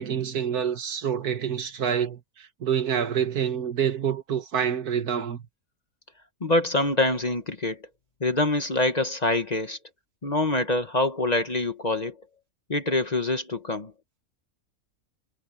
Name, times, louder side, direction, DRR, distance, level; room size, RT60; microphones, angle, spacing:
voice 1, 0.0-5.4, right 8 dB, 85° right, 2.0 m, -27 dB
voice 2, 6.4-7.8 8.2-9.8 10.2-12.2 12.7-13.9, left 2 dB, 30° left, 1.2 m, -25 dB
omnidirectional pair, 1.6 m